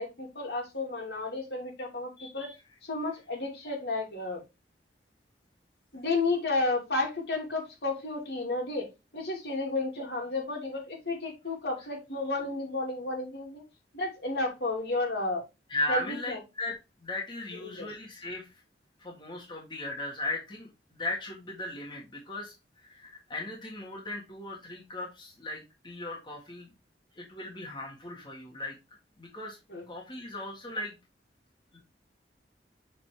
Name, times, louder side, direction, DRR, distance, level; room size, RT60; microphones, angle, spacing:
voice 1, 0.0-2.5 2.8-4.4 5.9-8.9 9.1-13.6 13.9-15.4 15.9-16.4 17.5-17.9 29.7-29.8, left 2 dB, 70° left, 2.7 m, -32 dB
voice 2, 15.7-18.5 19.0-26.7 27.2-28.8 29.2-29.6 29.9-31.0 31.7-31.8, left 2 dB, 25° left, 1.7 m, -37 dB
7.3 x 4.2 x 3.4 m
head